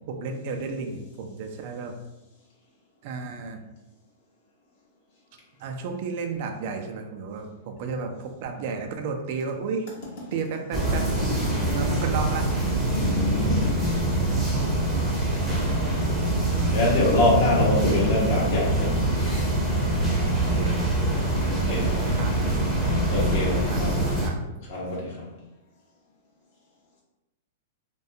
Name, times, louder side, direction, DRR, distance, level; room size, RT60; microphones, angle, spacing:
voice 1, 0.1-1.9 3.0-3.6 5.6-9.9 10.3-11.0 11.7-12.4 16.5-16.8 20.6-20.9 21.6-21.7 22.1-22.6 23.7-24.4, right 4 dB, 50° right, 4 dB, 0.4 m, -33 dB
sound 1, 10.7-24.3, right 1 dB, 5° right, 0.6 m, -24 dB
voice 2, 12.9-13.8 16.7-19.5 21.5-22.2 23.1-24.2 24.6-25.3, left 2 dB, 60° left, -4 dB, 0.6 m, -25 dB
2.3 x 2.2 x 2.7 m, 0.98 s
supercardioid pair, 150°, 0 cm